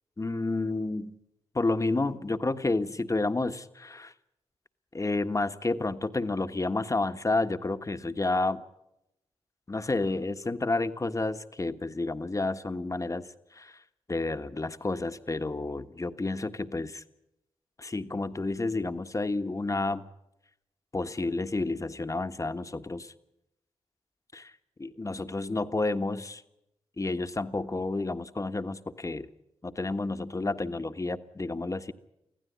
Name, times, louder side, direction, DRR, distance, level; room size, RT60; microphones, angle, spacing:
voice 1, 0.2-1.2 1.5-4.1 4.9-8.6 9.7-13.8 14.1-17.0 17.8-20.1 20.9-23.1 24.3-24.5 24.8-26.4 27.0-29.3 29.6-31.9, left 2 dB, 30° left, 9 dB, 1.4 m, -30 dB
25.0 x 15.5 x 9.7 m, 0.87 s
cardioid pair, 55°, 11 cm